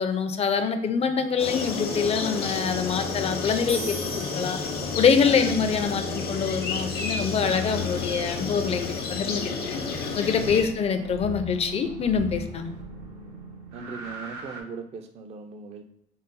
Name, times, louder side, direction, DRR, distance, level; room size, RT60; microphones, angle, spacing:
voice 1, 0.0-4.6 5.0-9.8 10.2-12.7, left 6 dB, 35° left, 8 dB, 0.4 m, -25 dB
sound 1, 1.4-10.6, left 4 dB, 65° left, 0.8 m, -30 dB
sound 2, 3.7-5.3, right 1 dB, 75° right, 1.1 m, -40 dB
sound 3, 7.4-8.9 10.3-14.6, right 2 dB, 90° right, 0.8 m, -40 dB
voice 2, 10.7-11.1 13.7-15.8, right 5 dB, 40° right, 6 dB, 0.4 m, -40 dB
3.9 x 2.0 x 3.9 m, 0.74 s
cardioid pair, 110°, 17 cm